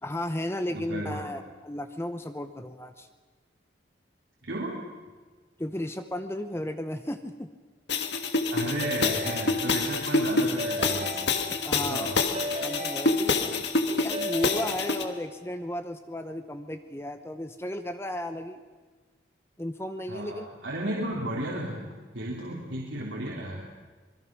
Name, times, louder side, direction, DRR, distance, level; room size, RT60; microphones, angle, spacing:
voice 1, 0.0-3.1 5.6-7.5 11.6-12.1 12.6-18.6 19.6-20.5, left 1 dB, 15° left, 8 dB, 0.8 m, -34 dB
voice 2, 0.7-1.3 4.4-4.8 8.5-11.3 11.9-12.2 20.1-21.9 22.1-23.6, right 1 dB, 80° right, -4 dB, 3.4 m, -34 dB
sound 1, 7.9-15.0, left 3 dB, 65° left, 1.7 m, -27 dB
Keyboard (musical) / Ringtone, 8.8-10.2 10.6-11.9 12.3-13.7 14.1-15.5, equal, 30° right, 2.6 m, -36 dB
26.0 x 22.0 x 6.2 m, 1.4 s
head